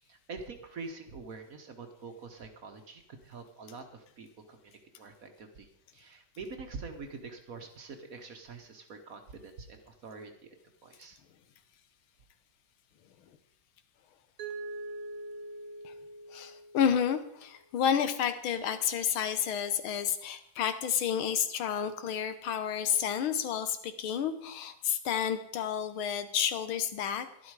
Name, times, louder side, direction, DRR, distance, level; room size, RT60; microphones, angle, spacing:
voice 1, 0.0-11.2, right 4 dB, 50° right, 5 dB, 1.3 m, -46 dB
Mallet percussion, 14.4-17.3, right 2 dB, 90° right, 1.8 m, -43 dB
voice 2, 16.3-27.5, left 8 dB, 85° left, 10 dB, 1.8 m, -30 dB
11.5 x 11.5 x 4.8 m, 0.72 s
omnidirectional pair, 2.2 m